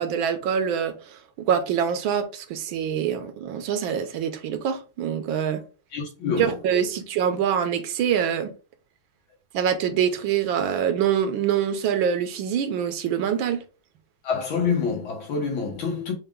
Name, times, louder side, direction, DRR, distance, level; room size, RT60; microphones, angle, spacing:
voice 1, 0.0-5.6 6.4-8.5 9.5-13.6, right 8 dB, 80° right, 1.5 m, -25 dB
voice 2, 5.9-6.5 14.2-16.1, left 5 dB, 80° left, 2.1 m, -26 dB
5.7 x 2.4 x 3.5 m
omnidirectional pair, 2.2 m